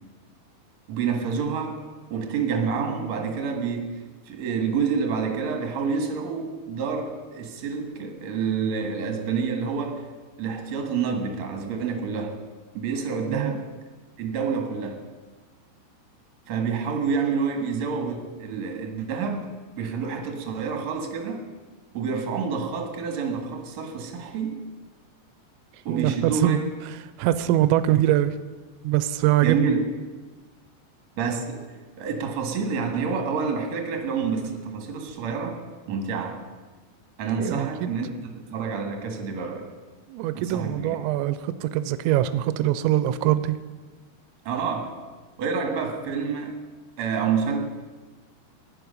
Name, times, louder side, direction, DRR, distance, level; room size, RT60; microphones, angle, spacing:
voice 1, 0.9-1.8 2.1-4.0 4.3-10.1 10.4-12.4 12.7-13.7 14.2-15.0 16.5-19.5 19.8-21.5 21.9-24.7 25.8-26.6 29.4-29.9 31.2-31.6 32.0-35.6 35.9-36.4 37.2-39.7 40.3-41.0 44.5-45.0 45.4-46.6 47.0-47.6, right 5 dB, 55° right, 3 dB, 2.1 m, -28 dB
voice 2, 25.9-28.4 28.8-29.7 37.4-37.9 40.1-43.6, right 13 dB, 85° right, 12 dB, 2.9 m, -23 dB
17.0 x 10.5 x 5.3 m, 1.3 s
omnidirectional pair, 5.2 m